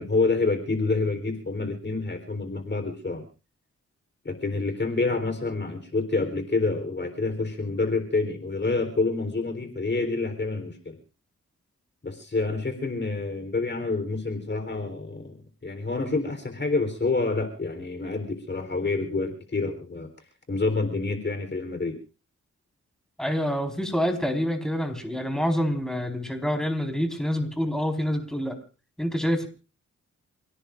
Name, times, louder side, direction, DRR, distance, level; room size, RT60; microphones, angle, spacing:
voice 1, 0.0-3.2 4.2-11.0 12.0-15.3 15.6-20.1 20.5-22.0, left 3 dB, 40° left, 7 dB, 3.8 m, -27 dB
voice 2, 23.2-28.5 29.0-29.5, equal, ahead, 3 dB, 4.6 m, -27 dB
29.0 x 17.5 x 2.6 m, 0.34 s
cardioid pair, 70°, 29 cm